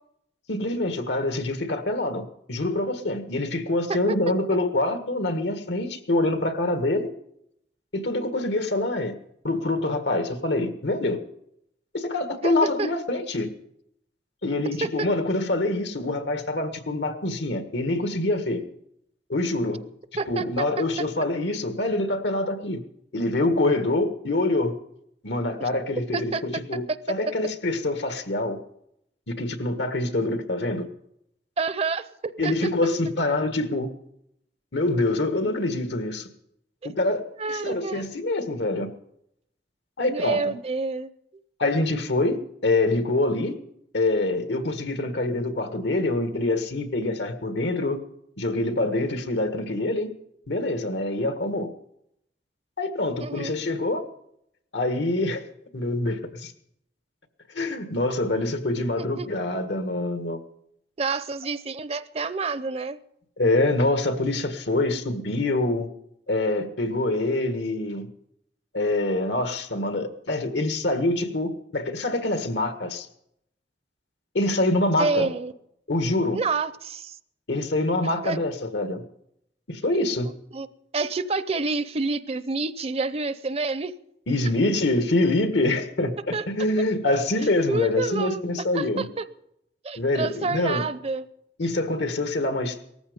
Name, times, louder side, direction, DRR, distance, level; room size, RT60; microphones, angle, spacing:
voice 1, 0.5-7.1 7.9-9.1 9.4-11.2 11.9-13.5 14.4-18.6 19.3-19.8 20.3-22.8 23.1-24.7 25.2-28.6 29.3-30.9 32.4-33.9 34.7-36.3 36.8-37.2 37.5-38.9 40.0-40.4 41.6-43.6 43.9-48.0 48.4-50.1 50.5-51.7 52.8-54.0 54.7-55.4 55.7-56.5 57.5-60.4 63.4-65.9 66.3-68.1 68.7-73.1 74.3-75.3 75.9-76.4 77.5-79.0 79.7-80.3 84.3-89.1 90.0-90.8 91.6-92.8, left 2 dB, 85° left, 8 dB, 1.7 m, -25 dB
voice 2, 12.4-12.9 14.8-15.1 20.2-20.4 25.6-25.7 26.1-26.4 26.9-27.0 31.6-32.7 37.4-38.2 40.1-41.1 53.2-53.5 59.0-59.3 61.0-63.0 75.0-75.5 76.3-77.2 78.2-78.4 79.9-80.7 80.9-83.9 86.3-86.4 87.7-88.4 88.7-89.2 89.8-91.3, right 3 dB, 35° right, 15 dB, 0.6 m, -28 dB
18.5 x 14.5 x 5.2 m, 0.76 s
head